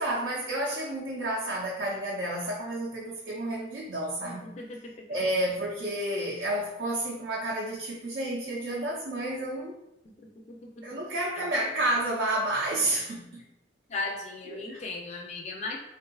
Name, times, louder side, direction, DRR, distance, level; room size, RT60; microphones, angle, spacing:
voice 1, 0.0-4.6 5.1-9.7 10.8-13.4 14.5-14.9, right 1 dB, 75° right, -5 dB, 0.5 m, -30 dB
voice 2, 13.9-15.8, left 3 dB, 35° left, 0 dB, 0.4 m, -36 dB
3.5 x 2.3 x 2.3 m, 0.87 s
head